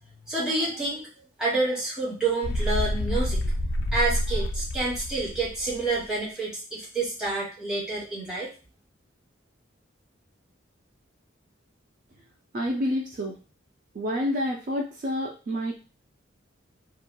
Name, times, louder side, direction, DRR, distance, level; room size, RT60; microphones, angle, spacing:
voice 1, 0.2-1.1 1.4-3.4 3.9-8.5, right 2 dB, 5° right, -8 dB, 1.2 m, -28 dB
sound 1, 2.4-6.0, equal, 70° left, 0.4 m, -28 dB
voice 2, 12.5-13.4 13.9-15.7, equal, 40° right, 0 dB, 0.3 m, -28 dB
2.8 x 2.4 x 2.2 m, 0.35 s
head